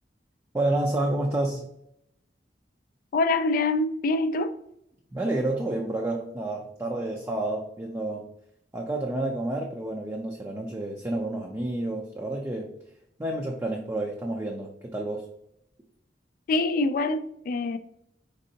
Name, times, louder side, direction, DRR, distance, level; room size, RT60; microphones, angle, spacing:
voice 1, 0.5-1.7 5.1-8.3 8.7-12.7 13.2-15.3, right 2 dB, 15° right, 0.4 m, -29 dB
voice 2, 3.1-4.5 16.5-17.8, left 2 dB, 50° left, 0.3 m, -25 dB
5.2 x 3.6 x 2.8 m
head